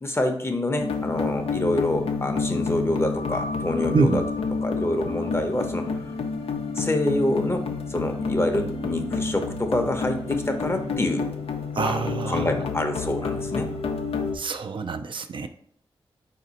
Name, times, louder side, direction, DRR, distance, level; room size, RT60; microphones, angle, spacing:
voice 1, 0.0-4.2 4.6-5.9 6.7-11.3 11.8-13.7, left 1 dB, 25° left, 5 dB, 0.7 m, -26 dB
sound 1, 0.8-14.4, left 4 dB, 85° left, 0.5 m, -29 dB
Singing, 4.9-7.3 7.9-9.1 10.0-11.3 13.3-13.6, right 3 dB, 75° right, 0.9 m, -44 dB
voice 2, 11.7-12.5 14.3-15.5, right 4 dB, 60° right, 8 dB, 0.4 m, -25 dB
4.2 x 2.6 x 4.0 m, 0.67 s
cardioid pair, 50°, 10 cm